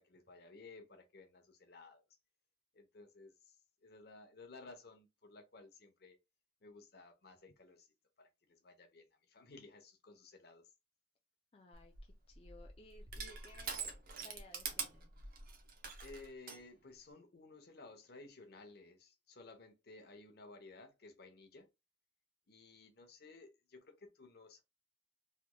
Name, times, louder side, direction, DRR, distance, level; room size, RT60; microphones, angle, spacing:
voice 1, 0.0-2.0 2.7-3.6 3.8-6.2 6.6-7.9 8.2-10.7 16.0-21.7 22.5-24.6, left 3 dB, 60° left, 0.8 m, -56 dB
voice 2, 11.5-15.1, left 2 dB, 35° left, 0.4 m, -60 dB
Crushing, 11.7-16.6, right 5 dB, 55° right, 0.8 m, -45 dB
3.3 x 3.0 x 2.2 m
head